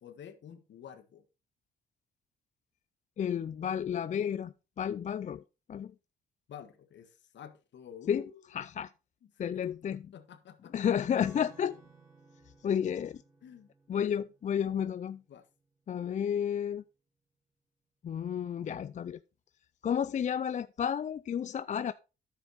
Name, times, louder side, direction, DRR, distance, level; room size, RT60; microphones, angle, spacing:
voice 1, 0.0-1.2 6.5-8.3 9.4-9.6 10.1-10.7 13.4-13.7 15.3-15.4, left 9 dB, 65° left, 1.5 m, -49 dB
voice 2, 3.2-5.4 5.7-5.9 8.1-8.9 9.4-10.1 10.7-11.8 12.6-13.2 13.9-15.2 15.9-16.8 18.0-19.2 19.8-21.9, left 8 dB, 40° left, 0.4 m, -32 dB
Acoustic guitar / Strum, 11.2-16.0, right 3 dB, 15° right, 3.3 m, -59 dB
10.0 x 7.2 x 4.2 m
cardioid pair, 90°, 20 cm